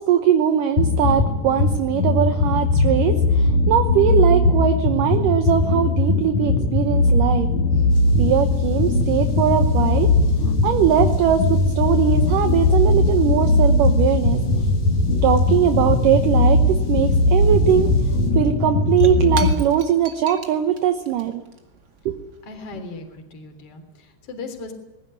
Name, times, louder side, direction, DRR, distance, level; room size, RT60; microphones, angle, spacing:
voice 1, 0.0-7.5 8.2-10.1 10.6-14.4 15.2-17.9 18.3-21.4 22.1-22.2, right 9 dB, 70° right, 7 dB, 2.2 m, -20 dB
sound 1, 0.8-19.5, left 2 dB, 55° left, 2.3 m, -19 dB
sound 2, 7.9-18.3, left 1 dB, 90° left, 8.6 m, -27 dB
Shatter / Crushing, 18.0-18.1 18.3-23.2, right 4 dB, 40° right, 1.5 m, -40 dB
voice 2, 22.4-24.7, left 3 dB, 35° left, 6 dB, 4.0 m, -37 dB
20.5 x 17.5 x 9.8 m, 1.1 s
omnidirectional pair, 5.0 m